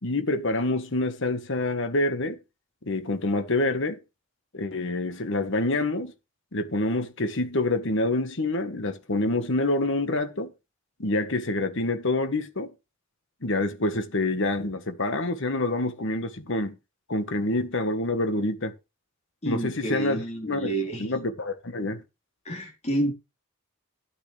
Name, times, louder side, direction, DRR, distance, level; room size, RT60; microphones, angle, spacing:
voice 1, 0.0-2.4 2.8-4.0 4.5-6.1 6.5-10.5 11.0-12.7 13.4-16.7 17.1-18.7 19.4-22.0, left 2 dB, 60° left, 1.4 m, -27 dB
voice 2, 19.4-21.1 22.5-23.1, right 1 dB, 30° left, 3.7 m, -29 dB
12.5 x 9.2 x 3.3 m
head